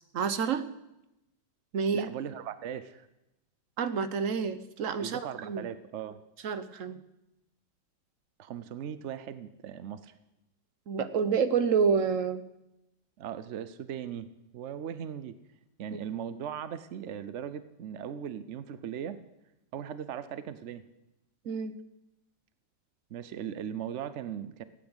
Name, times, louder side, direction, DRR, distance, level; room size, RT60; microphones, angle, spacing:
voice 1, 0.1-0.6 1.7-2.1 3.8-5.7 6.4-7.0 10.9-12.4 15.9-16.0 21.4-21.7, right 6 dB, 50° right, 12 dB, 1.1 m, -28 dB
voice 2, 1.9-3.1 5.0-6.2 8.4-10.1 13.2-14.3 14.5-15.4 15.8-19.2 19.7-20.8 23.1-24.6, right 9 dB, 70° right, 13 dB, 0.7 m, -38 dB
15.5 x 9.8 x 8.0 m, 0.89 s
omnidirectional pair, 2.0 m